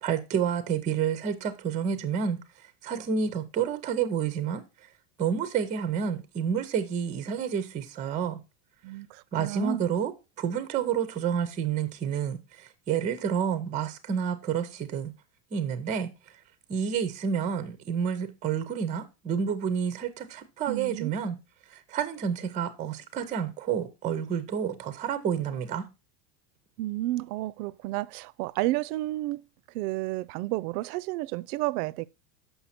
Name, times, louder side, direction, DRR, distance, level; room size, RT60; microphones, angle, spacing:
voice 1, 0.0-2.4 2.8-4.6 5.2-8.4 9.3-10.1 10.4-15.1 15.5-16.1 16.7-21.4 21.7-25.8, right 7 dB, 15° right, 0.5 m, -29 dB
voice 2, 8.8-9.8 20.7-21.2 26.8-29.4 29.7-32.1, right 18 dB, 70° right, 0.5 m, -31 dB
7.1 x 5.8 x 4.2 m
supercardioid pair, 160°, 46 cm